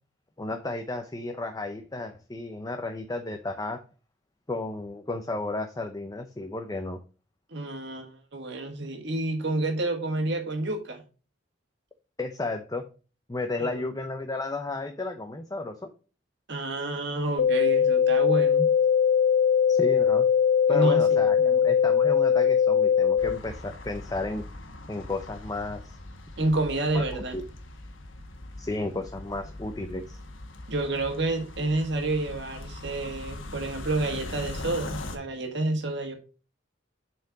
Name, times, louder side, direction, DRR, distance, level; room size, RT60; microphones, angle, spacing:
voice 1, 0.4-3.8 4.5-7.0 12.2-12.8 13.3-15.9 19.7-20.3 20.7-21.4 21.6-24.4 24.9-26.0 26.9-27.4 28.6-30.2, left 2 dB, 20° left, 6 dB, 0.6 m, -33 dB
voice 2, 7.5-11.0 13.6-13.9 16.5-18.7 20.7-21.7 26.4-27.4 30.7-36.1, right 2 dB, 60° right, 4 dB, 1.7 m, -29 dB
sound 1, 17.4-23.4, left 7 dB, 65° left, 0.4 m, -21 dB
sound 2, 23.2-35.2, left 2 dB, 85° left, 1.3 m, -41 dB
6.7 x 4.5 x 4.8 m, 0.34 s
head